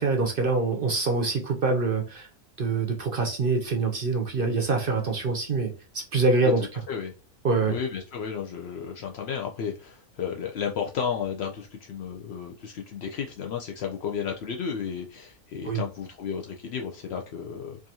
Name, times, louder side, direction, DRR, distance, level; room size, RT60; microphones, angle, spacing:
voice 1, 0.0-2.3 2.6-6.7 7.4-7.7 15.6-15.8, right 3 dB, 50° right, 0.7 m, -25 dB
voice 2, 6.4-7.1 7.7-17.9, left 7 dB, 70° left, 0.6 m, -33 dB
4.7 x 2.6 x 2.8 m
omnidirectional pair, 1.6 m